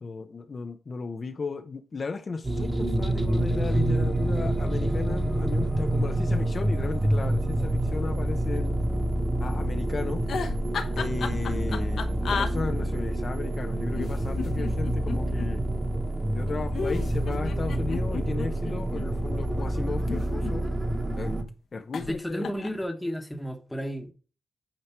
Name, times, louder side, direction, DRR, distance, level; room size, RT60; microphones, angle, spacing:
voice 1, 0.0-8.7 9.4-10.2 11.0-12.0 12.3-15.6 16.3-20.7 21.2-21.3 21.7-22.5, left 4 dB, 35° left, 0.7 m, -35 dB
sound 1, 2.4-21.4, right 1 dB, 15° right, 1.2 m, -27 dB
sound 2, 10.3-12.5 13.9-15.5 16.7-19.1 19.9-20.9 21.9-22.2 22.4-22.8, left 5 dB, 65° left, 1.0 m, -33 dB
voice 2, 22.0-24.1, equal, 5° left, 1.1 m, -32 dB
9.0 x 4.7 x 4.4 m
wide cardioid pair, 130°, 0 cm